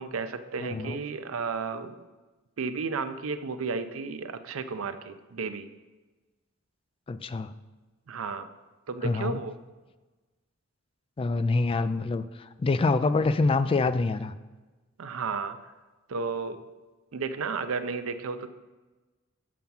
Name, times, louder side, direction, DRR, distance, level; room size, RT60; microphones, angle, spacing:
voice 1, 0.0-2.0 2.6-5.7 8.1-8.5 8.9-9.6 15.0-15.7 16.1-16.6 17.1-18.5, right 4 dB, 85° right, 10 dB, 0.5 m, -33 dB
voice 2, 0.6-1.0 7.1-7.5 9.0-9.4 11.2-14.3, left 3 dB, 25° left, 12 dB, 0.3 m, -26 dB
7.3 x 5.8 x 5.4 m, 1.2 s
head